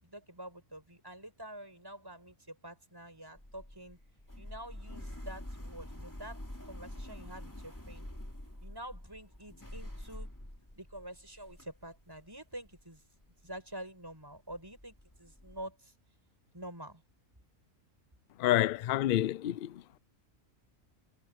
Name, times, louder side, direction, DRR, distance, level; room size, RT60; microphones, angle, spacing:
voice 1, 0.0-4.0 4.4-8.1 8.6-10.3 10.8-13.0 13.4-15.9 16.5-17.0, right 1 dB, 15° right, 7.7 m, -47 dB
sound 1, 3.4-13.0 13.2-13.8 14.2-14.3 14.5-15.7, left 1 dB, 15° left, 2.9 m, -47 dB
voice 2, 18.4-20.0, left 13 dB, 70° left, 0.5 m, -29 dB
omnidirectional pair, 1.5 m